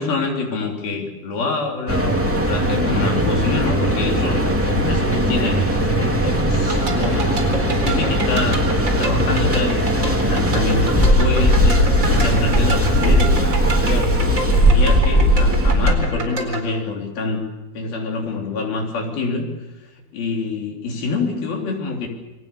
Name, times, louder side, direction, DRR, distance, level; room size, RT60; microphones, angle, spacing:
voice 1, 0.0-14.2 14.6-17.4 17.7-19.5 20.1-22.1, left 3 dB, 70° left, 1 dB, 5.3 m, -26 dB
Mechanical fan, 1.9-15.9, equal, 5° right, 2.1 m, -18 dB
sound 1, 6.6-16.6, right 3 dB, 20° right, 4.1 m, -29 dB
29.5 x 21.5 x 7.0 m, 1.1 s
omnidirectional pair, 4.5 m